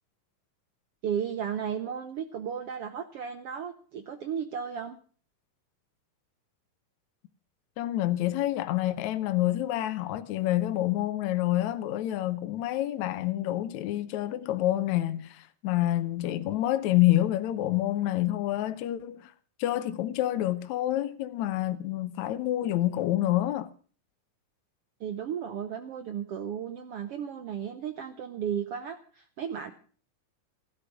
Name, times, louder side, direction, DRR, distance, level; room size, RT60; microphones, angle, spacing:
voice 1, 1.0-5.0 25.0-29.7, right 8 dB, 75° right, 1.3 m, -34 dB
voice 2, 7.8-19.3 19.6-23.7, left 14 dB, 70° left, 1.9 m, -28 dB
16.5 x 12.0 x 6.1 m
omnidirectional pair, 3.9 m